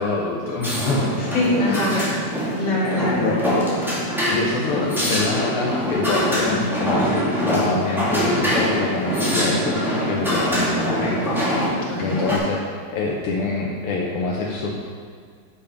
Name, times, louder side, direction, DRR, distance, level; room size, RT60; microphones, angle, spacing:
voice 1, 0.0-1.4 3.2-3.4 4.3-11.2 12.0-14.7, left 3 dB, 80° left, -2 dB, 1.8 m, -25 dB
sound 1, 0.6-12.4, equal, ahead, 2.1 m, -23 dB
voice 2, 1.2-2.0 2.5-3.3 10.6-10.9 11.8-12.3, left 1 dB, 55° left, -5 dB, 2.7 m, -24 dB
9.3 x 6.8 x 5.1 m, 2.1 s
omnidirectional pair, 2.4 m